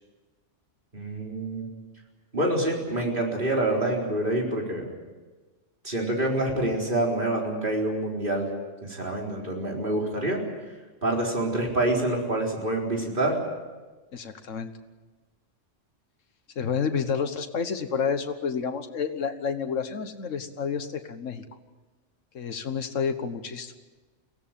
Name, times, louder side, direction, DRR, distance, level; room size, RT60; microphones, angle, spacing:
voice 1, 0.9-1.7 2.3-4.9 5.8-8.5 8.8-10.4 11.0-13.4, right 1 dB, 40° right, -1 dB, 4.4 m, -26 dB
voice 2, 14.1-14.7 16.5-21.4 22.3-23.7, left 6 dB, 85° left, 8 dB, 1.6 m, -29 dB
23.0 x 17.0 x 9.0 m, 1.3 s
omnidirectional pair, 1.3 m